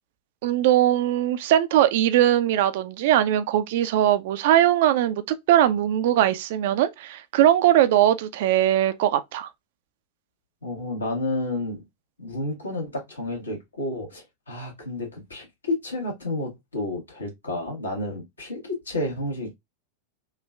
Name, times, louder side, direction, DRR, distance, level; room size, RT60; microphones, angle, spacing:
voice 1, 0.4-5.2 5.5-9.5, right 12 dB, 50° right, 0.3 m, -20 dB
voice 2, 10.6-11.8 12.2-19.5, left 2 dB, 75° left, 1.1 m, -31 dB
3.1 x 2.3 x 2.2 m
figure-of-eight pair, 90°, 0 cm